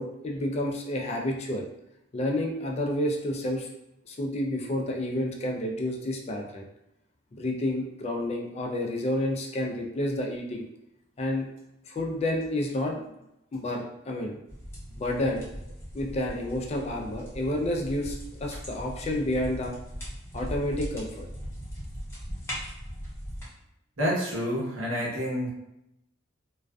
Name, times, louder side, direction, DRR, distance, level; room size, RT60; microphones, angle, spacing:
voice 1, 0.0-1.7 2.1-3.7 4.0-6.6 7.3-10.7 11.2-11.5 11.9-13.0 13.5-14.4 15.0-15.5 15.9-19.8 20.3-21.3, left 1 dB, 35° left, 0 dB, 0.3 m, -30 dB
sound 1, 14.5-23.5, equal, 15° left, 0.7 m, -39 dB
voice 2, 24.0-25.5, equal, 85° right, -5 dB, 0.9 m, -28 dB
2.4 x 2.3 x 2.2 m, 0.83 s
head